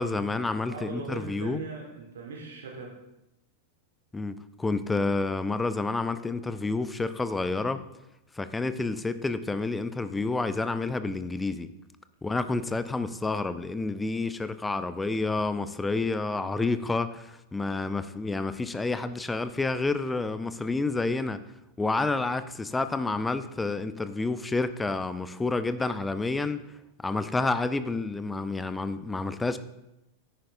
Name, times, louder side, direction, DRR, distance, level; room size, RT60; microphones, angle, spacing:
voice 1, 0.0-1.6 4.1-7.8 8.3-11.7 12.2-21.4 21.8-26.6 27.0-29.6, left 3 dB, 10° left, 0.5 m, -29 dB
voice 2, 0.7-3.0, right 4 dB, 65° right, 1.4 m, -39 dB
10.0 x 9.6 x 2.5 m
figure-of-eight pair, 90°, 0 cm